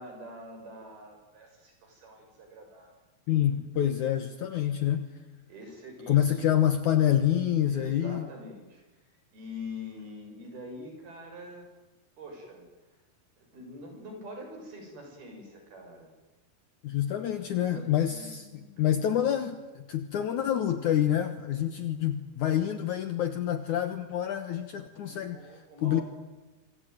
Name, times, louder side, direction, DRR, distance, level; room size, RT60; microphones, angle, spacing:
voice 1, 0.0-2.9 5.5-6.5 7.7-11.7 12.2-12.7 13.4-16.1 17.5-19.3 24.9-26.0, left 1 dB, 55° right, 3 dB, 8.1 m, -45 dB
voice 2, 3.3-5.1 6.1-8.3 16.8-25.4 25.8-26.0, left 10 dB, 85° left, 9 dB, 1.7 m, -27 dB
27.0 x 23.5 x 9.3 m, 1.1 s
omnidirectional pair, 5.4 m